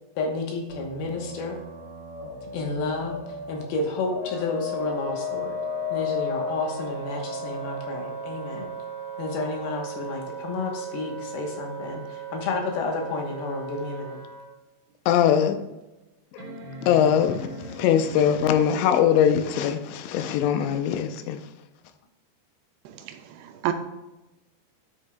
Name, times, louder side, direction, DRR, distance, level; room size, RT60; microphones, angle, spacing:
voice 1, 0.2-1.6 2.5-3.2 3.5-5.6 5.9-8.7 9.2-14.2, left 3 dB, 70° left, 2 dB, 2.7 m, -31 dB
sound 1, 0.7-9.9, left 7 dB, 30° left, 2.7 m, -35 dB
Wind instrument woodwind instrument, 4.2-14.5, right 8 dB, 35° right, 2.4 m, -38 dB
sound 2, 14.2-14.3 14.9-15.0 16.4-18.9 20.6-20.7, equal, 65° right, 1.8 m, -41 dB
voice 2, 15.1-15.6 16.3-16.5 16.8-21.5, left 9 dB, 90° left, 8 dB, 2.9 m, -22 dB
voice 3, 22.9-23.7, right 13 dB, 85° right, 7 dB, 2.6 m, -31 dB
9.6 x 7.9 x 2.2 m, 1.0 s
omnidirectional pair, 5.0 m